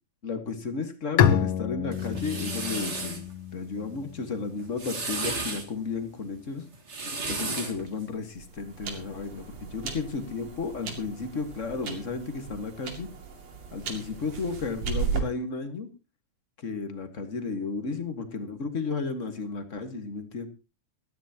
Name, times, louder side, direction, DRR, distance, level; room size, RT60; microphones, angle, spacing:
voice 1, 0.2-3.2 3.5-6.6 7.3-13.1 13.7-15.9 16.6-20.5, left 4 dB, 35° left, 8 dB, 1.3 m, -33 dB
Bowed string instrument, 1.2-4.7, left 9 dB, 65° left, 1.6 m, -27 dB
sound 1, 1.9-3.2 4.6-5.7 6.7-7.8, right 3 dB, 30° right, 1.5 m, -33 dB
sound 2, 7.8-15.2, right 6 dB, 60° right, 3.5 m, -36 dB
18.5 x 14.0 x 2.9 m, 0.29 s
omnidirectional pair, 3.4 m